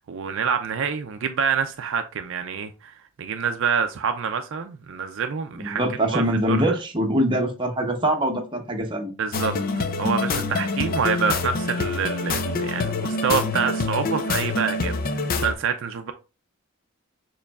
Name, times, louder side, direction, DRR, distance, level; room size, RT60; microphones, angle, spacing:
voice 1, 0.1-2.9 3.2-5.8 6.1-6.8 9.2-16.1, right 6 dB, 65° right, 0.4 m, -27 dB
voice 2, 5.6-9.1, right 1 dB, 25° right, 0.8 m, -23 dB
sound 1, 9.3-15.5, left 3 dB, 45° left, 0.5 m, -26 dB
6.6 x 3.0 x 2.3 m
head